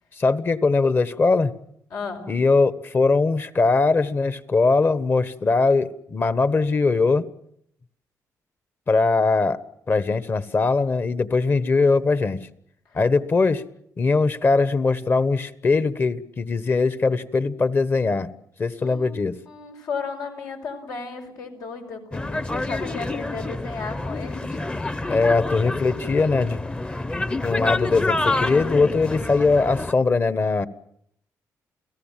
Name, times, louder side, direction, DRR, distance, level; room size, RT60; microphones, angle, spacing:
voice 1, 0.2-1.5 2.3-7.3 8.9-9.6 9.9-12.4 12.9-13.6 14.0-18.3 18.6-19.4 25.1-26.6 27.4-30.7, left 3 dB, 35° left, 14 dB, 1.3 m, -21 dB
voice 2, 1.9-2.3 18.8-24.6, left 5 dB, 80° left, 3 dB, 5.5 m, -34 dB
sound 1, 22.1-29.9, left 2 dB, 15° left, 0.9 m, -28 dB
29.5 x 18.0 x 7.5 m, 0.71 s
cardioid pair, 100°, 6 cm